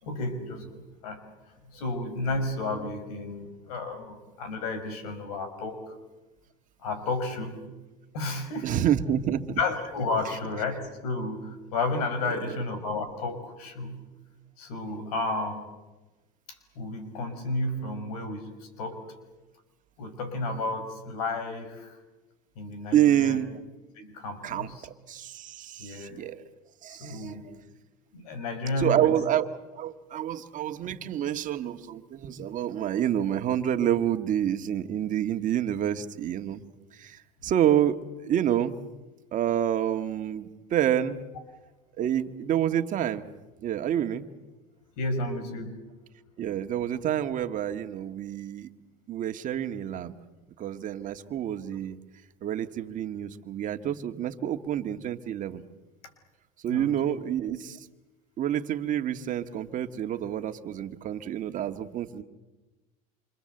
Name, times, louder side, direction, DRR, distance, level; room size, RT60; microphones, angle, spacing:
voice 1, 0.0-1.2 1.7-6.0 6.8-7.6 8.1-8.7 9.6-14.0 14.6-15.7 16.5-19.1 20.0-22.0 22.6-23.4 23.9-24.9 25.8-26.2 26.9-27.5 28.1-29.1 45.0-45.8 56.7-56.9, left 2 dB, 85° left, 9 dB, 5.8 m, -32 dB
voice 2, 8.6-9.6 12.4-12.6 22.9-23.6 24.4-26.4 26.8-27.4 28.8-36.6 36.9-38.8 39.3-41.2 42.0-43.3 43.6-44.3 46.4-48.7 49.1-50.1 50.6-52.0 52.4-55.6 56.6-57.9 58.4-62.2, right 10 dB, 45° right, 7 dB, 1.8 m, -28 dB
27.5 x 26.5 x 7.9 m, 1.1 s
supercardioid pair, 110°, 19 cm